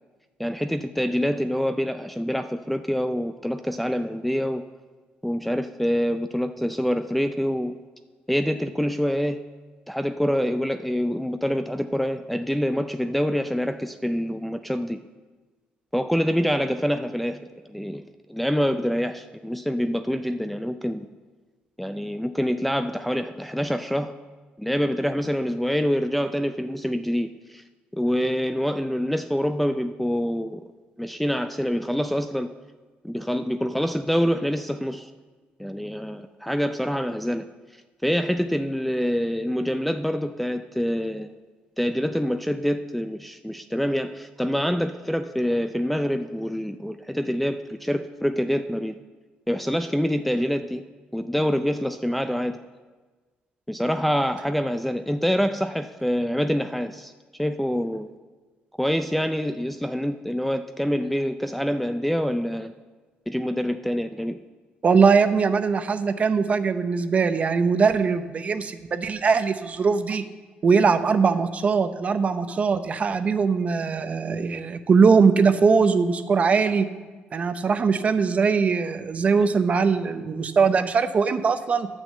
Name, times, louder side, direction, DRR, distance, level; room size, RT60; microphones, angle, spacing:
voice 1, 0.4-4.6 5.2-7.8 8.3-9.4 9.9-15.0 15.9-17.4 17.7-18.0 18.3-21.1 21.8-24.1 24.6-27.6 27.9-30.6 31.0-32.5 33.0-35.1 35.6-37.5 38.0-41.3 41.8-48.9 49.5-50.8 51.1-52.6 53.7-57.1 57.4-58.1 58.8-62.7 63.3-64.4, equal, 5° left, 7 dB, 0.4 m, -26 dB
voice 2, 64.8-70.2 70.6-76.9 77.3-81.9, right 5 dB, 40° right, 10 dB, 0.7 m, -21 dB
9.9 x 6.2 x 7.5 m, 1.3 s
cardioid pair, 115°, 4 cm